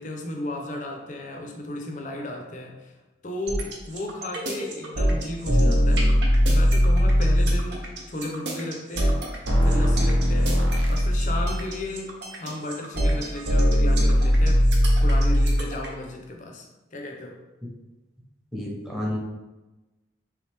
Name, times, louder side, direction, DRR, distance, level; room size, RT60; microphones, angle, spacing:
voice 1, 0.0-2.9 3.2-6.2 6.5-9.3 9.6-14.7 15.0-17.4, left 1 dB, 40° left, 2 dB, 0.6 m, -34 dB
sound 1, 3.5-15.9, equal, 70° right, 0.8 m, -20 dB
voice 2, 18.5-19.2, left 1 dB, ahead, -5 dB, 0.8 m, -29 dB
3.4 x 3.2 x 3.3 m, 1.1 s
head